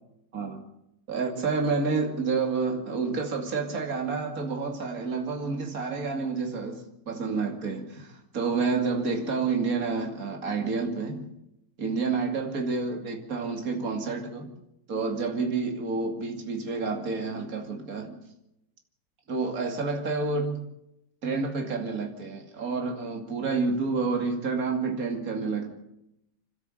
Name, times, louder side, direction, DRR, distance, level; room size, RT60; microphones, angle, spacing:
voice 1, 0.3-0.6 1.1-11.3 11.8-14.5 14.9-18.2 19.3-20.7 21.2-25.7, right 4 dB, 50° right, 3.0 m, -29 dB
27.0 x 12.5 x 7.9 m
omnidirectional pair, 2.0 m